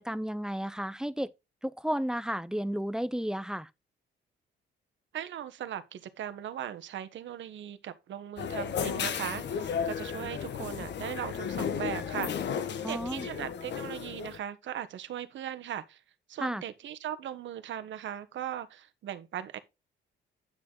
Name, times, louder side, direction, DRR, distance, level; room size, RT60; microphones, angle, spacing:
voice 1, 0.0-1.3 1.6-3.7 12.8-13.3 16.4-16.6, equal, 5° right, 0.6 m, -32 dB
voice 2, 5.1-16.0 16.3-19.6, right 10 dB, 70° right, 1.2 m, -39 dB
sound 1, 8.4-14.4, left 7 dB, 60° left, 1.4 m, -34 dB
9.7 x 6.4 x 3.9 m
cardioid pair, 90°, 20 cm